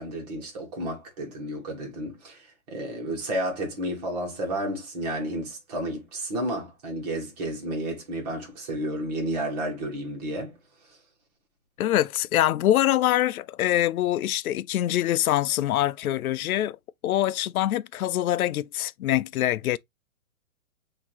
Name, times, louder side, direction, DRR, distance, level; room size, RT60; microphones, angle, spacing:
voice 1, 0.0-10.6, right 1 dB, 30° right, 1.6 m, -31 dB
voice 2, 11.8-16.8 17.0-19.8, left 13 dB, 90° left, 0.5 m, -24 dB
5.9 x 2.9 x 2.9 m
hypercardioid pair, 170°, 41 cm